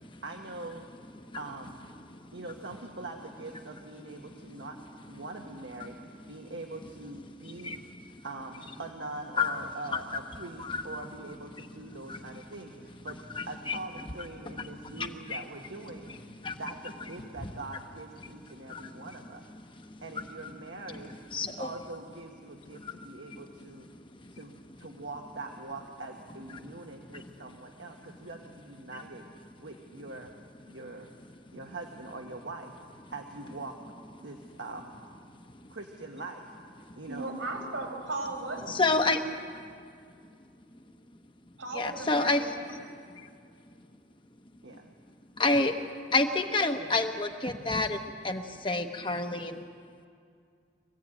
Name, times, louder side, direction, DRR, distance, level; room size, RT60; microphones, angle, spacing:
voice 1, 0.2-0.8 1.3-1.8 2.3-4.8 5.1-7.8 8.2-13.2 13.5-16.1 16.6-19.4 20.0-21.1 21.4-23.9 24.3-30.3 30.6-31.1 31.5-32.7 33.1-33.8 34.2-34.9 35.7-36.5 36.9-37.3 44.6-44.9 46.8-47.0, right 2 dB, 70° right, 2 dB, 1.4 m, -43 dB
voice 2, 7.5-7.8 8.1-8.2 9.4-9.6 9.9-10.0 10.6-11.0 12.1-12.2 13.3-13.8 14.5-14.6 14.8-15.4 16.4-16.6 18.7-19.1 19.8-20.5 20.9-21.0 21.3-21.7 22.7-23.1 23.9-24.3 26.5-27.3 35.5-35.7 36.9-37.0 38.7-39.4 41.7-42.8 43.1-43.3 44.7-44.8 45.4-45.8 46.1-49.6, left 3 dB, 25° left, 6 dB, 1.1 m, -30 dB
voice 3, 37.1-39.3 41.6-42.8, right 2 dB, 90° right, 2 dB, 4.8 m, -37 dB
24.5 x 15.5 x 9.0 m, 2.3 s
head